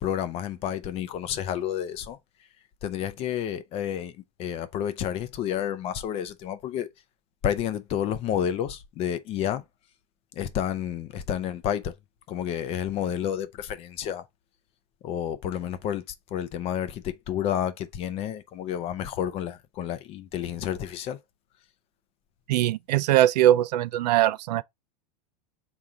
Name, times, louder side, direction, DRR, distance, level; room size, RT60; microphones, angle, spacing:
voice 1, 0.0-2.2 2.8-4.1 4.4-6.9 7.4-9.6 10.4-11.9 12.3-14.2 15.0-16.0 16.3-21.2, left 10 dB, 30° left, 0.5 m, -30 dB
voice 2, 22.5-24.6, right 13 dB, 75° right, 0.4 m, -21 dB
3.8 x 2.8 x 4.8 m
supercardioid pair, 150°, 21 cm